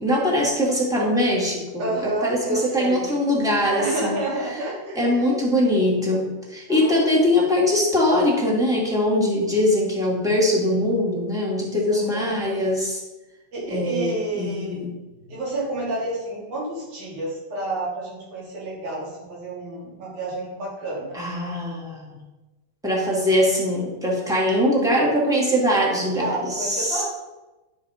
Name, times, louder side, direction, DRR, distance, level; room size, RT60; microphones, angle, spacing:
voice 1, 0.0-4.2 4.9-13.0 13.7-14.9 21.1-22.2 22.8-27.0, left 1 dB, ahead, -4 dB, 1.7 m, -22 dB
voice 2, 1.8-3.1 3.8-5.4 6.7-7.2 11.9-12.4 13.5-14.9 15.3-21.2 26.2-27.0, right 2 dB, 55° right, -5 dB, 4.5 m, -30 dB
9.8 x 7.2 x 5.2 m, 1.1 s
omnidirectional pair, 4.1 m